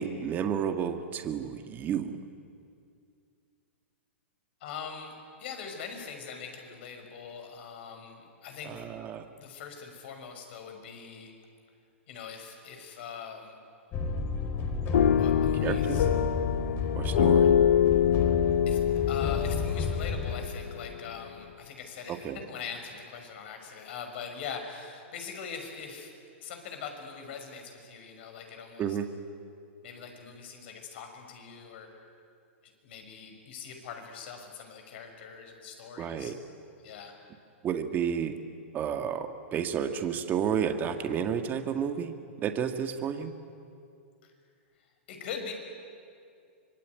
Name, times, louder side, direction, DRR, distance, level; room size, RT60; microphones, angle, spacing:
voice 1, 0.0-2.1 8.7-9.2 15.6-16.1 17.0-17.5 22.2-22.4 28.8-29.1 36.0-36.4 37.6-38.4 38.7-42.1 42.4-43.3, right 8 dB, 25° right, 7 dB, 1.9 m, -31 dB
voice 2, 4.6-5.1 5.4-8.8 9.4-11.3 12.1-13.6 15.2-16.1 18.7-18.8 19.1-26.1 26.4-29.0 29.8-31.9 32.6-36.3 36.8-37.2 44.2-44.3 45.1-45.5, left 6 dB, 60° left, 4 dB, 6.1 m, -42 dB
sound 1, 13.9-20.3, left 4 dB, 30° left, 4.4 m, -31 dB
sound 2, 14.9-21.0, left 9 dB, 75° left, 0.7 m, -25 dB
25.5 x 22.5 x 9.6 m, 2.4 s
hypercardioid pair, 125°, 7 cm